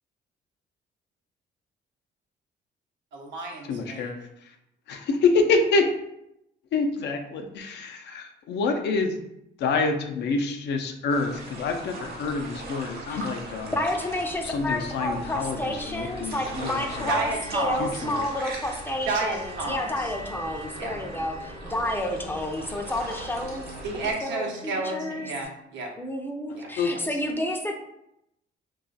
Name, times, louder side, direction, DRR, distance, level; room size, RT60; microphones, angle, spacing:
voice 1, 3.1-4.2 17.1-18.0 19.1-20.1 20.8-20.9 23.8-25.9 26.5-27.0, right 3 dB, 80° right, 0 dB, 0.8 m, -31 dB
voice 2, 3.7-4.2 4.9-5.9 6.7-9.2 9.6-13.7 14.4-16.3 16.6-17.1 17.8-18.2 26.8-26.9, left 4 dB, 70° left, 4 dB, 0.5 m, -27 dB
sound 1, 11.1-24.1, right 2 dB, 55° right, 1.0 m, -40 dB
voice 3, 13.7-25.3 26.0-27.7, left 1 dB, 10° left, 3 dB, 0.4 m, -30 dB
sound 2, 15.0-25.4, equal, 35° right, 0.6 m, -46 dB
2.4 x 2.3 x 3.9 m, 0.82 s
cardioid pair, 95°, 19 cm